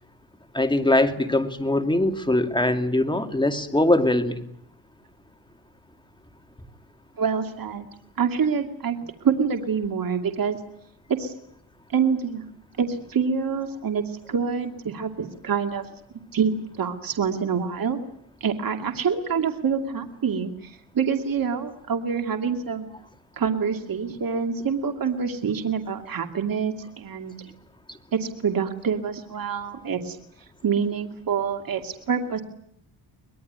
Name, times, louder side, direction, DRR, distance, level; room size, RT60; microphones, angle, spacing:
voice 1, 0.5-4.4, left 1 dB, 10° left, 6 dB, 2.6 m, -22 dB
voice 2, 7.2-7.9 8.2-10.6 11.1-11.3 11.9-12.5 12.8-15.9 16.3-16.5 16.8-18.0 18.4-22.9 23.4-27.3 28.1-30.2 30.6-32.4, right 6 dB, 45° right, 5 dB, 2.5 m, -26 dB
24.5 x 21.0 x 9.5 m, 0.69 s
cardioid pair, 115°, 46 cm